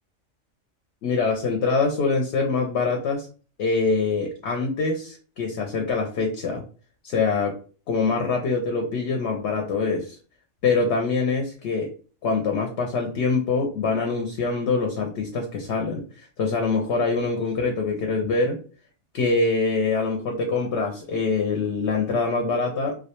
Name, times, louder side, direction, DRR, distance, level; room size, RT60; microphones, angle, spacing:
voice 1, 1.0-3.3 3.6-6.6 7.0-7.5 7.9-10.2 10.6-11.9 12.2-18.6 19.1-23.0, left 4 dB, 70° left, 2 dB, 0.8 m, -24 dB
2.3 x 2.1 x 2.8 m, 0.38 s
omnidirectional pair, 1.2 m